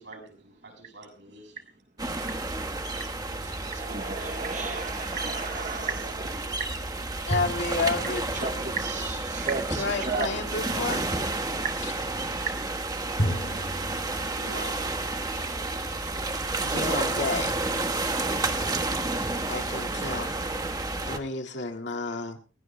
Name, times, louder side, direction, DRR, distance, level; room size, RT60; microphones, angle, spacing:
voice 1, 0.0-1.6 6.3-6.4 7.2-7.3 14.3-14.9, right 2 dB, 65° right, 3 dB, 6.8 m, -47 dB
sound 1, 2.0-21.2, right 2 dB, 20° right, 1.3 m, -31 dB
sound 2, 3.1-4.5 7.3-9.9 13.2-14.1, equal, 40° left, 5.5 m, -34 dB
voice 2, 3.3-7.1 8.3-10.3, right 4 dB, 40° right, 6 dB, 0.8 m, -34 dB
voice 3, 7.3-8.8 9.7-11.1 11.8-11.9 16.6-17.5 19.5-20.3 21.0-22.4, left 3 dB, 70° left, 2 dB, 2.1 m, -31 dB
29.0 x 16.5 x 2.2 m, 0.34 s
head